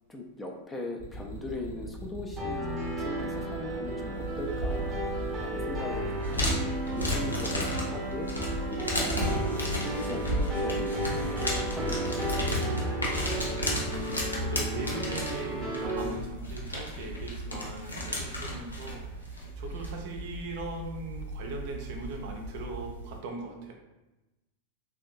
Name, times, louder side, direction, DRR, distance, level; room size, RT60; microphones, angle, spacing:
voice 1, 0.1-2.6 3.0-5.0 5.4-6.1 6.3-8.3 8.7-11.4 11.7-12.6, left 2 dB, 10° left, 1 dB, 0.4 m, -40 dB
sound 1, 1.0-6.1, right 1 dB, 60° left, 1.1 m, -42 dB
sound 2, 2.4-16.1, right 1 dB, 15° right, 0.8 m, -33 dB
sound 3, 4.1-23.2, equal, 85° left, 0.5 m, -34 dB
voice 2, 14.3-23.7, right 3 dB, 50° right, 1 dB, 0.5 m, -40 dB
3.5 x 2.3 x 2.6 m, 1.0 s
figure-of-eight pair, 90°, 0 cm